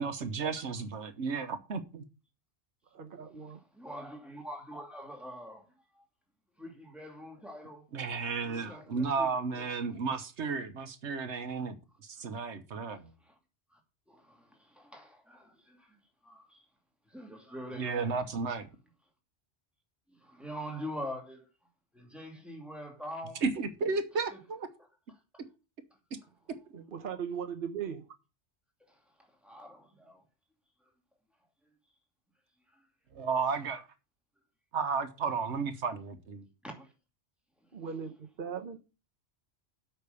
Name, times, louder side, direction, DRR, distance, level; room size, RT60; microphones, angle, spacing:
voice 1, 0.0-2.0 7.9-11.8 12.0-13.1 17.8-18.7 23.4-24.7 26.7-26.8 33.1-33.9 34.7-36.4, right 5 dB, 80° right, 1.3 m, -33 dB
voice 2, 2.9-3.6 26.9-28.1 37.7-38.8, right 7 dB, 50° right, 1.1 m, -38 dB
voice 3, 3.5-6.0 6.6-7.9 8.4-9.7 10.0-10.1 13.2-13.4 13.7-13.8 14.1-16.6 17.1-18.2 20.1-21.5 21.9-23.4 24.3-24.4 25.3-25.4 28.9-30.2 32.7-32.9 36.6-36.9 37.8-37.9, equal, ahead, 2.5 m, -45 dB
8.2 x 5.9 x 6.8 m
omnidirectional pair, 1.2 m